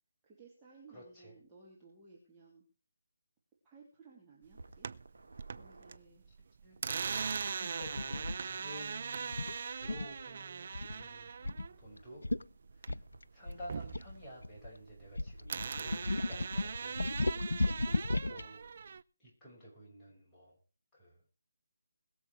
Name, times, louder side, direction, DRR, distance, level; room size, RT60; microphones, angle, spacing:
voice 1, 0.2-2.6 3.6-4.9 5.5-6.3 8.6-8.8, right 4 dB, 15° right, -5 dB, 2.9 m, -59 dB
voice 2, 0.9-1.3 6.6-6.7 7.4-9.4 9.7-11.3 11.8-12.2 12.7-13.0 13.3-17.0 17.8-18.6 19.2-20.6 20.9-21.2, equal, 10° left, -7 dB, 6.6 m, -52 dB
sound 1, 4.5-5.9 6.2-13.2 13.5-15.1 15.5-19.0, right 6 dB, 45° right, 0.5 m, -40 dB
sound 2, 4.5-6.0 7.7-8.4 11.1-17.4, right 2 dB, 65° right, 2.3 m, -59 dB
sound 3, 7.8-8.4 9.3-10.2 10.7-11.0 11.4-11.7 12.0-12.1 12.2-12.4 12.9-14.7 15.2-18.5, left 2 dB, 75° left, 0.6 m, -35 dB
21.5 x 7.2 x 4.7 m, 0.35 s
figure-of-eight pair, 150°, 0 cm